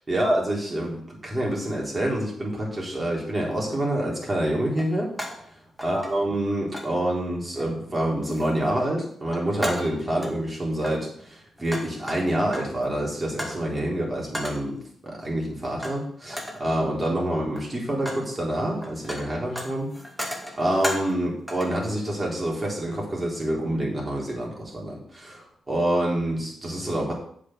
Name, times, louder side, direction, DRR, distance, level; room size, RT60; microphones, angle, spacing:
voice 1, 0.1-5.1 5.8-14.8 15.0-19.9 20.6-27.1, right 1 dB, 30° right, -3 dB, 3.9 m, -27 dB
sound 1, 3.5-3.6 4.7-5.5 5.8-6.4 6.7-6.9 7.6-7.9 8.3-8.8 9.1-10.4 10.8-12.8 13.4-13.7 14.3-14.7 15.8-16.0 16.3-16.7 17.4-18.3 18.6-21.2 21.5-21.8, equal, 5° right, 2.1 m, -35 dB
7.5 x 5.3 x 6.4 m, 0.63 s
cardioid pair, 65°, 0 cm